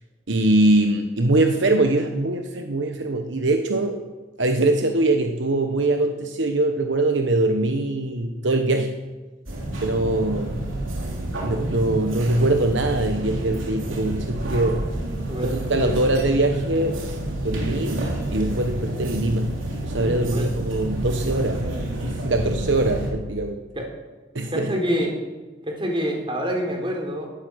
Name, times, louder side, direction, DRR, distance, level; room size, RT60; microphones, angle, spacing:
voice 1, 0.3-4.0 4.4-9.0 9.8-10.7 11.4-14.8 15.4-17.2 17.4-19.5 19.8-21.7 22.1-23.6 24.3-24.7, right 2 dB, 65° right, 6 dB, 1.1 m, -22 dB
sound 1, 9.5-23.1, right 1 dB, 85° right, 3.5 m, -29 dB
voice 2, 15.3-15.9 20.3-20.5 23.7-23.9 24.5-25.1 25.7-27.3, equal, 25° right, 2 dB, 3.7 m, -26 dB
17.0 x 13.0 x 6.3 m, 1.3 s
head